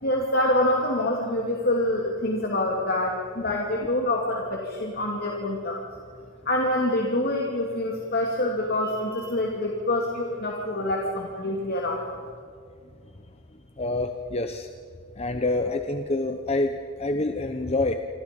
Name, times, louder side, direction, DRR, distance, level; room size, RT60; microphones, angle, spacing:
voice 1, 0.0-5.8 6.5-12.0, left 1 dB, 50° left, -1 dB, 2.7 m, -26 dB
voice 2, 13.8-14.7 15.2-17.9, left 2 dB, 30° left, 7 dB, 0.9 m, -27 dB
27.5 x 26.0 x 5.4 m, 2.2 s
head